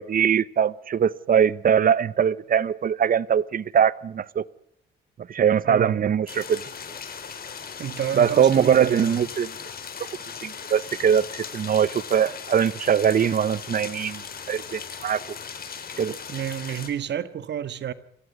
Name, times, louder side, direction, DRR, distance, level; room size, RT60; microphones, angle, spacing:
voice 1, 0.0-4.4 5.3-6.6 8.1-9.5 10.4-14.2 14.5-15.2 16.0-16.2, right 8 dB, 45° right, 1.0 m, -22 dB
voice 2, 5.6-6.0 7.8-9.3 16.3-17.9, right 10 dB, 60° right, 1.7 m, -30 dB
sound 1, 6.3-16.9, left 6 dB, 50° left, 4.4 m, -38 dB
26.5 x 15.0 x 9.6 m
cardioid pair, 90°, 20 cm